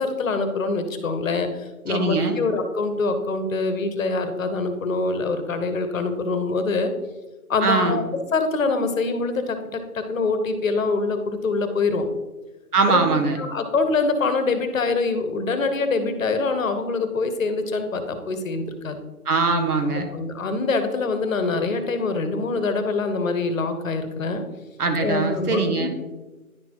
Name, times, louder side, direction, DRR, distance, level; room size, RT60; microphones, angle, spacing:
voice 1, 0.0-6.9 7.5-8.0 8.3-12.1 12.9-13.1 13.4-19.0 19.9-24.4 25.0-25.9, left 3 dB, 60° left, 8 dB, 1.0 m, -24 dB
voice 2, 1.9-2.4 7.6-8.0 12.7-13.4 19.2-20.1 24.8-25.9, right 4 dB, 75° right, 5 dB, 1.4 m, -21 dB
10.5 x 4.3 x 2.9 m, 1.1 s
hypercardioid pair, 160°, 45 cm